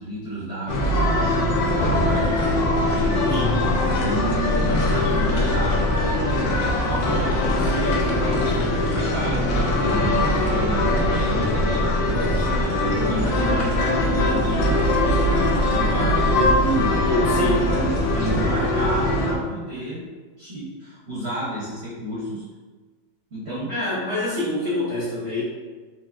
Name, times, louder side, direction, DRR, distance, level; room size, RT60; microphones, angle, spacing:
voice 1, 0.0-2.4 2.8-3.1 3.6-5.9 6.2-12.8 13.0-20.0 20.4-22.4 23.3-23.7, right 1 dB, 55° right, -8 dB, 0.7 m, -32 dB
sound 1, 0.7-19.3, left 1 dB, 80° left, 1.3 m, -21 dB
voice 2, 3.3-3.6 17.0-17.7 23.7-25.4, left 2 dB, 40° left, -10 dB, 1.0 m, -25 dB
4.2 x 3.1 x 2.4 m, 1.4 s
omnidirectional pair, 2.1 m